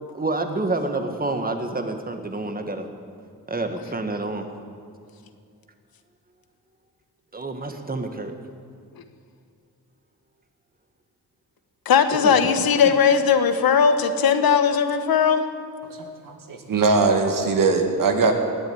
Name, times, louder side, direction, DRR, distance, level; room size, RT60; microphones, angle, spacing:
voice 1, 0.1-2.9 3.5-4.5 7.3-8.3 12.1-12.7, right 2 dB, 25° right, 6 dB, 1.7 m, -28 dB
voice 2, 11.8-15.4, left 6 dB, 70° left, 8 dB, 1.3 m, -18 dB
voice 3, 16.2-18.3, right 4 dB, 60° right, 4 dB, 2.1 m, -20 dB
19.5 x 8.0 x 9.0 m, 2.3 s
cardioid pair, 85°, 37 cm